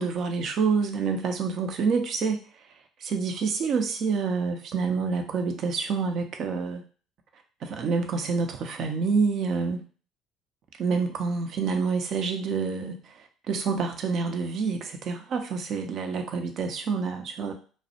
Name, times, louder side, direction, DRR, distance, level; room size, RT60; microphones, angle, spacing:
voice 1, 0.0-2.4 3.0-6.8 7.6-9.8 10.8-17.5, right 5 dB, 60° right, 5 dB, 0.5 m, -27 dB
2.3 x 2.0 x 2.7 m, 0.39 s
hypercardioid pair, 60°, 0 cm